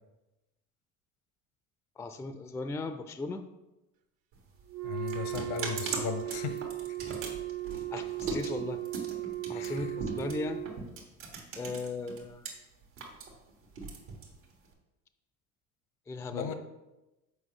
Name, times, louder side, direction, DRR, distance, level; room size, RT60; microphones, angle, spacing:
voice 1, 2.0-3.4 7.9-8.8 9.5-10.6 11.6-12.4 16.1-16.5, left 3 dB, 5° left, 9 dB, 0.3 m, -37 dB
sound 1, 4.3-12.5 12.8-14.7, right 4 dB, 85° right, 1.4 m, -39 dB
Wind instrument woodwind instrument, 4.7-10.8, right 15 dB, 60° right, 0.7 m, -37 dB
voice 2, 4.8-6.6 9.5-10.0 16.3-16.5, left 8 dB, 70° left, 9 dB, 0.8 m, -37 dB
6.1 x 4.6 x 3.7 m, 1.0 s
hypercardioid pair, 65°, 41 cm